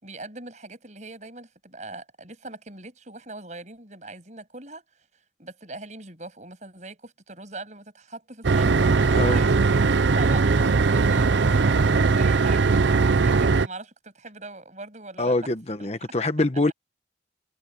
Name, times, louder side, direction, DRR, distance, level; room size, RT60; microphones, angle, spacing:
voice 1, 0.0-4.8 5.4-15.3 15.8-15.9, right 2 dB, 40° right, 7.1 m, -41 dB
sound 1, 8.4-13.7, right 4 dB, 80° right, 0.6 m, -20 dB
voice 2, 15.2-16.7, left 2 dB, 35° left, 1.2 m, -24 dB
head